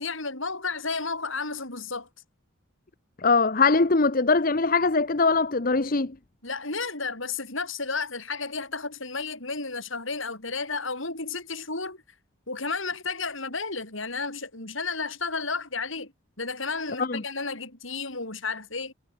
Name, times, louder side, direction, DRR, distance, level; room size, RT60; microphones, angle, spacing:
voice 1, 0.0-2.1 6.4-12.0 12.5-16.1 16.4-18.9, left 4 dB, 70° left, 7.7 m, -32 dB
voice 2, 3.2-6.2 17.0-17.2, left 4 dB, 40° left, 0.9 m, -22 dB
head